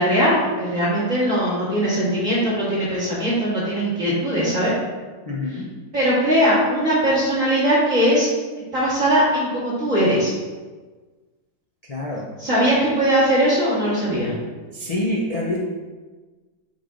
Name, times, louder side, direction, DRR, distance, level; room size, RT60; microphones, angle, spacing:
voice 1, 0.0-4.7 5.9-8.3 8.7-10.3 12.4-14.3, equal, 40° right, -9 dB, 2.4 m, -20 dB
voice 2, 5.3-5.7 11.8-12.2 14.7-15.6, left 1 dB, 90° left, -5 dB, 0.3 m, -26 dB
9.2 x 3.4 x 3.8 m, 1.3 s
omnidirectional pair, 2.3 m